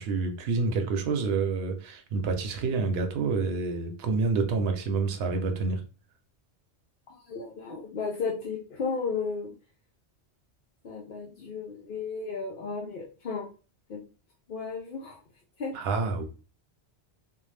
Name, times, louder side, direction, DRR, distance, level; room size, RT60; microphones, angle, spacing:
voice 1, 0.0-5.8 15.7-16.2, right 4 dB, 70° right, 0.8 m, -28 dB
voice 2, 7.1-9.5 10.8-13.5 13.9-14.0 14.5-15.2 15.6-15.7, left 5 dB, 55° left, 0.7 m, -34 dB
2.6 x 2.1 x 3.2 m
omnidirectional pair, 1.1 m